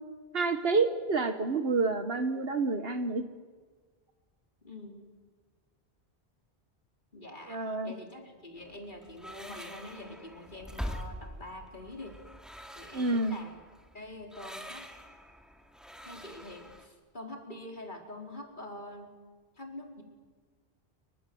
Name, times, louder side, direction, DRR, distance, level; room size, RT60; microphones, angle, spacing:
voice 1, 0.3-3.2 7.5-7.9 12.9-13.4, right 3 dB, 70° right, 8 dB, 1.6 m, -28 dB
voice 2, 4.6-5.1 7.1-12.2 12.8-13.6 13.9-14.9 16.0-19.2 19.5-20.0, left 1 dB, 50° left, 2 dB, 4.5 m, -45 dB
sound 1, 8.6-16.8, equal, ahead, 2.6 m, -44 dB
29.0 x 25.0 x 7.8 m, 1.5 s
omnidirectional pair, 1.0 m